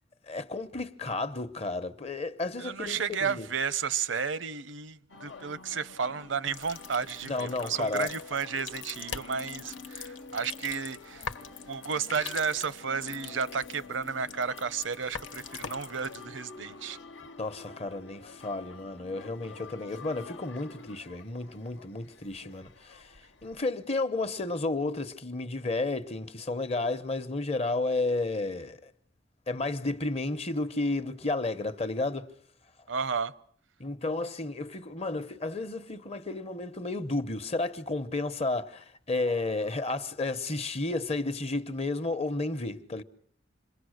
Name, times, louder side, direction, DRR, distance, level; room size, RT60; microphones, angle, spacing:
voice 1, 0.3-3.5 7.3-8.1 17.4-23.1 23.4-28.9 29.5-32.3 33.8-43.0, left 2 dB, 35° left, 1.0 m, -32 dB
voice 2, 2.6-11.3 11.7-17.0 32.9-33.3, right 6 dB, 80° right, 0.9 m, -32 dB
sound 1, 5.1-23.7, left 4 dB, 70° left, 1.1 m, -49 dB
sound 2, 6.5-16.2, left 6 dB, 90° left, 1.3 m, -44 dB
27.5 x 21.5 x 6.5 m
head